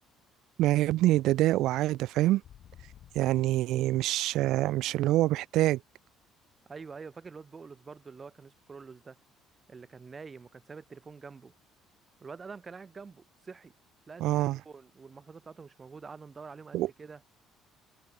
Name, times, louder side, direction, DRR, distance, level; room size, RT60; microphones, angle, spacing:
voice 1, 0.6-2.4 3.2-5.8 14.2-14.6 16.7-16.9, right 15 dB, 75° right, 0.4 m, -25 dB
sound 1, 2.4-5.7 6.1-8.3 8.6-9.0 9.3-11.2 11.5-11.6 11.9-12.3 12.7-12.8 15.0-15.1, left 10 dB, 55° left, 3.8 m, -57 dB
voice 2, 6.7-9.2 9.7-11.5 12.2-13.7 14.1-17.2, right 5 dB, 25° right, 4.7 m, -46 dB
cardioid pair, 110°, 0 cm